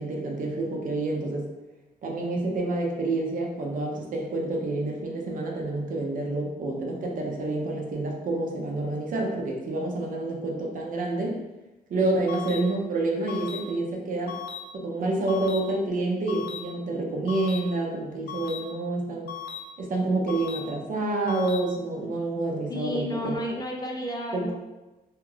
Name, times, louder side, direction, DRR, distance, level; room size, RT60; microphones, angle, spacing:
voice 1, 0.0-1.5 2.0-11.4 11.9-14.3 14.7-19.3 19.8-23.4 24.3-24.5, right 2 dB, 55° right, 0 dB, 0.6 m, -28 dB
sound 1, 12.3-12.6 13.3-13.6 14.3-14.6 15.3-15.6 16.3-16.6 17.3-17.6 18.3-18.6 19.3-19.6 20.3-20.6 21.3-21.6, left 9 dB, 85° left, 0.5 m, -36 dB
voice 2, 22.7-24.5, left 1 dB, 25° left, -1 dB, 0.4 m, -31 dB
2.7 x 2.3 x 3.2 m, 1.1 s
cardioid pair, 135°, 17 cm